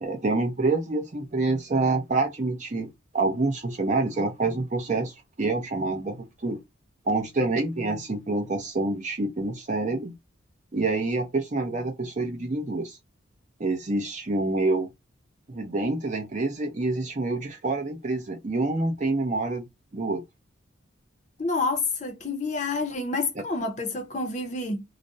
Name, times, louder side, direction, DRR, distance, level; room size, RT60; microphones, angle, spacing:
voice 1, 0.0-2.9 3.1-6.2 6.4-6.6 7.1-10.1 10.7-13.0 13.6-14.9 15.5-19.6 19.9-20.2, right 2 dB, 35° right, 0.5 m, -27 dB
voice 2, 21.4-24.8, left 3 dB, 35° left, 0.5 m, -28 dB
2.4 x 2.0 x 2.5 m
head